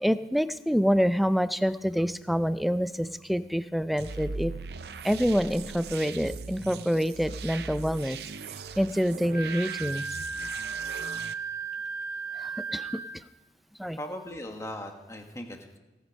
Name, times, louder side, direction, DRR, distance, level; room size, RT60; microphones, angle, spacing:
voice 1, 0.0-4.5 5.0-8.2 8.8-10.0 12.4-13.2 13.8-14.0, equal, ahead, 13 dB, 0.4 m, -27 dB
sound 1, 4.0-11.3, right 5 dB, 65° right, 0.6 m, -39 dB
Wind instrument woodwind instrument, 9.3-13.2, right 5 dB, 20° right, 1.7 m, -35 dB
voice 2, 14.0-15.8, left 1 dB, 15° left, 3 dB, 1.4 m, -39 dB
17.5 x 8.3 x 5.3 m, 1.1 s
head